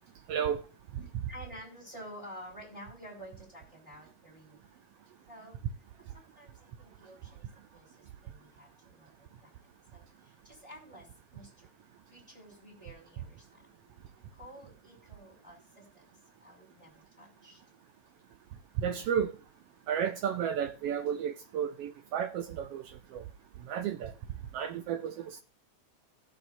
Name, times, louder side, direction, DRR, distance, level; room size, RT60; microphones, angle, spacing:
voice 1, 1.0-4.6 5.3-5.6 6.1-7.9 8.2-9.1 9.4-9.5 9.9-10.1 10.4-11.1 11.3-11.7 12.1-14.0 14.3-16.0 16.4-17.6, equal, 10° right, 4.9 m, -50 dB
voice 2, 18.8-19.3 19.9-22.8 23.7-24.1 24.5-25.1, right 8 dB, 80° right, 1.3 m, -32 dB
17.0 x 7.2 x 2.6 m
omnidirectional pair, 3.5 m